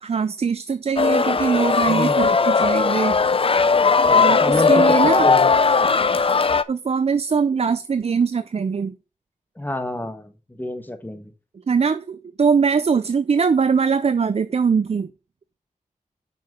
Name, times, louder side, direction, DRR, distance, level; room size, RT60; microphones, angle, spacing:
voice 1, 0.0-3.2 4.2-5.3 6.7-9.0 11.7-15.1, right 5 dB, 50° right, 0.5 m, -21 dB
sound 1, 1.0-6.6, left 4 dB, 45° left, 0.6 m, -17 dB
voice 2, 1.9-2.3 4.1-5.5 9.6-11.3, left 1 dB, 15° left, 1.4 m, -29 dB
6.7 x 6.0 x 5.1 m
wide cardioid pair, 85°, 14 cm